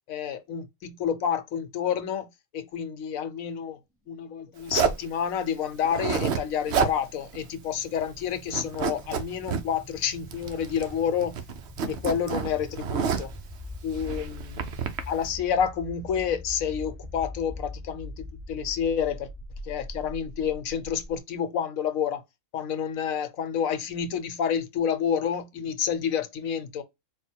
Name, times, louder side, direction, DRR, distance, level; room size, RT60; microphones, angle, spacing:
voice 1, 0.1-2.3 2.5-3.8 4.1-11.3 11.9-13.3 13.8-19.3 19.6-22.2 22.5-26.8, left 8 dB, 75° left, 1.1 m, -29 dB
Zipper (clothing), 4.7-5.1 5.8-6.4 6.7-7.0 7.3-7.4 7.8-8.2 8.5-9.6 10.3-11.0 11.2-13.4 14.0-15.0, right 6 dB, 60° right, 0.9 m, -28 dB
sound 1, 7.0-21.2, left 1 dB, 10° left, 0.9 m, -43 dB
4.1 x 2.2 x 4.3 m
omnidirectional pair, 1.4 m